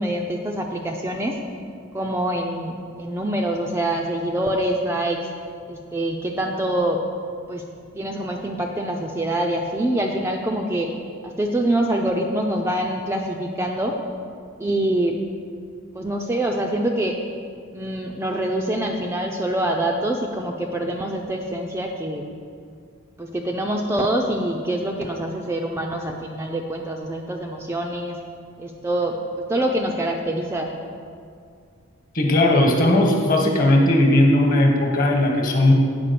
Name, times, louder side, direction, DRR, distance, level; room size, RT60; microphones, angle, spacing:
voice 1, 0.0-1.4 1.9-5.2 5.7-7.0 7.5-7.6 7.9-10.9 11.2-14.0 14.6-15.2 15.9-17.2 17.7-22.2 23.2-28.2 28.6-30.7, right 1 dB, 10° right, 1 dB, 0.4 m, -25 dB
voice 2, 32.1-35.7, left 1 dB, 40° left, 0 dB, 1.2 m, -17 dB
8.6 x 4.9 x 6.7 m, 2.3 s
head